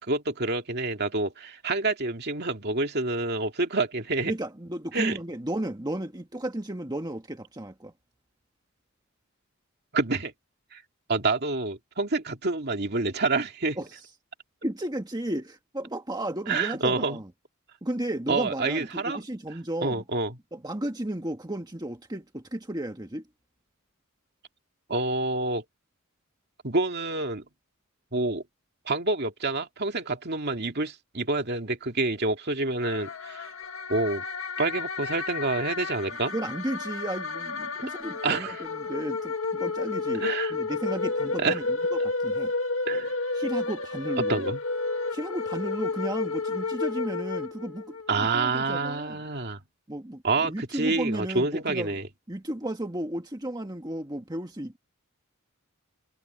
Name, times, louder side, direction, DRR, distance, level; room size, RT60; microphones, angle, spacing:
voice 1, 0.0-4.3 4.9-5.2 9.9-10.3 10.7-10.8 11.1-13.8 16.5-17.2 18.3-19.2 19.8-20.4 24.9-25.6 26.6-27.4 28.1-28.4 28.9-33.5 33.9-34.2 34.6-36.3 38.2-38.6 40.2-40.5 41.4-41.5 42.9-43.1 44.3-44.6 48.1-49.6 50.2-52.1, right 3 dB, 50° right, 2.5 m, -28 dB
voice 2, 4.3-7.9 13.8-14.0 14.6-17.3 17.8-20.0 20.5-23.2 36.1-41.6 41.9-42.5 43.3-44.5 45.1-49.2 49.9-52.0 52.3-54.8, right 1 dB, 20° right, 1.6 m, -34 dB
sound 1, 32.8-48.1, left 3 dB, 70° left, 1.7 m, -31 dB
head